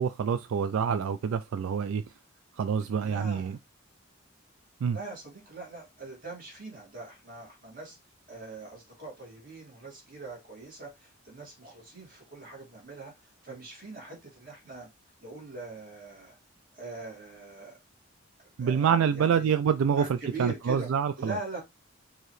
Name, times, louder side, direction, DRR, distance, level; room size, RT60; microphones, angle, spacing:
voice 1, 0.0-2.0 2.6-3.6 4.8-5.0 18.6-21.4, right 7 dB, 75° right, 0.3 m, -26 dB
voice 2, 3.0-3.6 4.9-8.0 8.3-14.9 15.2-16.4 16.7-17.8 18.6-19.5 20.0-20.9 21.2-21.6, right 3 dB, 40° right, 2.2 m, -42 dB
4.7 x 2.8 x 3.1 m
head